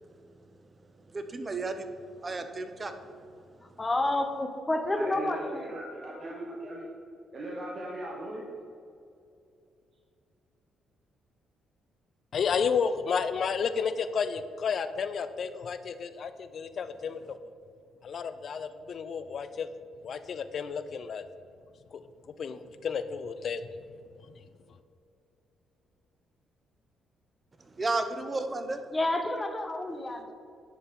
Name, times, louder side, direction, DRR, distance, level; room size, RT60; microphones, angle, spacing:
voice 1, 1.0-3.3 3.6-3.7 27.6-28.8, right 3 dB, 30° right, 8 dB, 0.7 m, -34 dB
voice 2, 3.6-5.7 28.9-30.3, left 2 dB, 20° left, 6 dB, 0.8 m, -29 dB
voice 3, 5.0-6.9 7.3-8.4, right 1 dB, 45° right, -4 dB, 1.1 m, -38 dB
voice 4, 12.3-17.4 18.0-19.7 20.0-21.2 21.9-22.0 22.4-23.6, left 6 dB, 55° left, 11 dB, 0.3 m, -31 dB
10.5 x 4.3 x 3.6 m, 2.5 s
cardioid pair, 90°, 0 cm